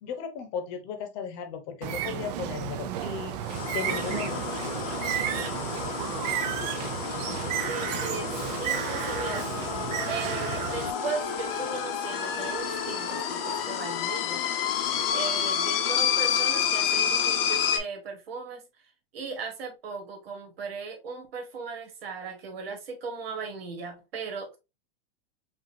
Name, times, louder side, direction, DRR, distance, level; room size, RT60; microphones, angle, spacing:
voice 1, 0.0-3.4 3.7-4.7, left 7 dB, 35° left, 0.9 m, -36 dB
Bird, 1.8-10.9, right 11 dB, 45° right, 0.5 m, -32 dB
sound 1, 3.4-17.8, left 9 dB, 75° left, 0.8 m, -30 dB
voice 2, 7.7-8.3 8.6-9.5 10.1-14.4 15.1-18.7 19.1-24.6, right 4 dB, 80° right, 1.7 m, -37 dB
sound 2, 8.4-15.1, equal, 25° right, 2.2 m, -41 dB
5.2 x 2.6 x 2.7 m
supercardioid pair, 150°, 30 cm